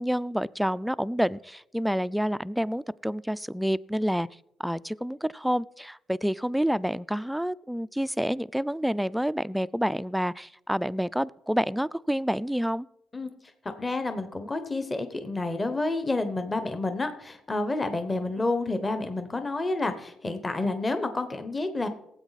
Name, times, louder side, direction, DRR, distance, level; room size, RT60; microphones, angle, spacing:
voice 1, 0.0-4.3 4.6-12.9, equal, ahead, 0.3 m, -28 dB
voice 2, 13.8-21.9, left 2 dB, 20° left, 1.0 m, -29 dB
18.0 x 8.0 x 4.1 m
cardioid pair, 105°, 0 cm